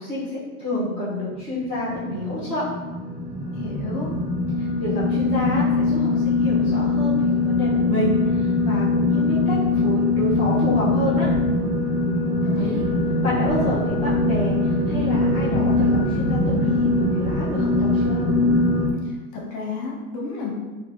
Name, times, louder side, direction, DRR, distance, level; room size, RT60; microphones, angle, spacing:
voice 1, 0.0-2.7 4.6-11.3 13.2-18.2, left 1 dB, 15° right, -12 dB, 0.6 m, -28 dB
sound 1, 1.6-18.9, left 2 dB, 80° right, 1.2 m, -22 dB
voice 2, 3.5-4.1 12.4-12.8 19.0-20.5, left 4 dB, 45° left, -3 dB, 0.9 m, -31 dB
3.3 x 2.5 x 2.4 m, 1.2 s
supercardioid pair, 150°, 44 cm